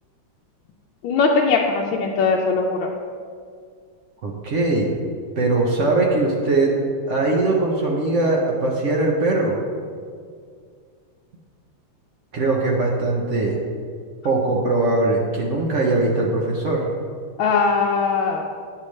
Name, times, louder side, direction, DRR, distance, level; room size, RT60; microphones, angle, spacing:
voice 1, 1.0-2.9 17.4-18.4, left 4 dB, 75° left, 0 dB, 1.3 m, -20 dB
voice 2, 4.2-4.9 5.4-6.7 7.1-9.6 12.3-13.6 14.2-16.9, right 2 dB, 75° right, -1 dB, 0.6 m, -21 dB
9.7 x 6.6 x 3.2 m, 2.1 s
omnidirectional pair, 2.3 m